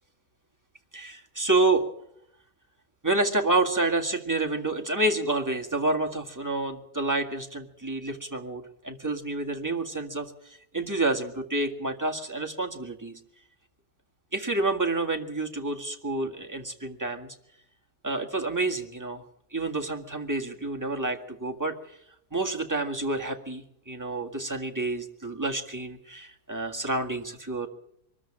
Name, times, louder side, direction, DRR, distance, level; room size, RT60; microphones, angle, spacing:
voice 1, 0.9-1.8 3.0-13.2 14.3-17.4 18.0-19.2 19.5-22.0 22.3-27.7, right 2 dB, 10° right, 1 dB, 1.8 m, -29 dB
23.5 x 13.5 x 8.8 m, 0.74 s
omnidirectional pair, 1.9 m